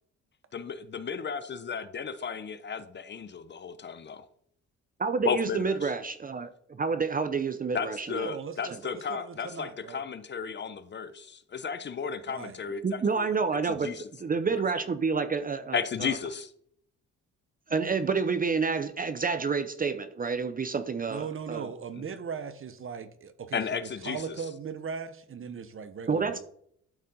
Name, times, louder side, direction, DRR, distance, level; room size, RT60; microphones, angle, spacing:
voice 1, 0.5-4.3 5.2-5.9 7.7-13.3 13.7-14.1 14.5-14.6 15.7-16.5 23.5-24.4, left 6 dB, 35° left, 0.6 m, -34 dB
voice 2, 5.0-8.3 12.8-13.9 14.2-16.2 17.7-21.7 26.1-26.4, right 5 dB, 30° right, 0.6 m, -29 dB
voice 3, 8.2-10.0 12.3-12.6 21.1-26.4, right 6 dB, 45° right, 1.0 m, -39 dB
12.0 x 4.2 x 3.8 m
cardioid pair, 90°, 30 cm